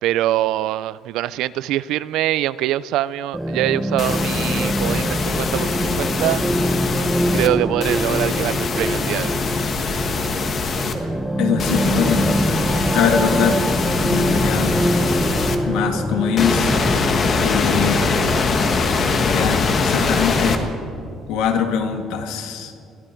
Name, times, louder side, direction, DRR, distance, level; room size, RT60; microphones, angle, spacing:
voice 1, 0.0-6.4 7.3-9.4, right 14 dB, 75° right, 18 dB, 0.4 m, -23 dB
sound 1, 3.3-18.6, right 1 dB, 5° right, 0.7 m, -24 dB
sound 2, 4.0-7.5 7.8-10.9 11.6-15.6 16.4-20.6, left 4 dB, 35° left, 1.3 m, -22 dB
voice 2, 11.4-12.6 12.9-13.7 14.0-14.8 15.6-16.7 17.4-18.1 19.2-20.6 21.3-22.7, left 7 dB, 90° left, 5 dB, 1.7 m, -22 dB
22.0 x 14.5 x 4.5 m, 2.4 s
cardioid pair, 155°, 0 cm